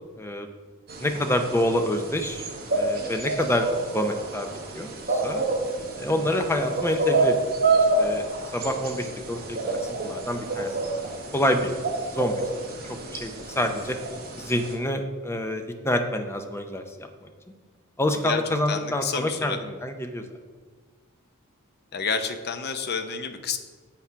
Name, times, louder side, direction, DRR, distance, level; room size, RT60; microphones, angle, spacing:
voice 1, 0.2-0.5 1.0-5.4 6.0-7.5 8.0-10.8 11.3-11.8 12.1-12.4 13.1-14.0 14.4-17.3 18.0-20.2, left 1 dB, 10° left, 5 dB, 0.6 m, -27 dB
sound 1, 0.9-14.7, right 2 dB, 45° right, 1.4 m, -28 dB
voice 2, 18.7-19.6 21.9-23.6, left 6 dB, 45° left, 7 dB, 0.7 m, -29 dB
7.8 x 5.9 x 5.6 m, 1.4 s
head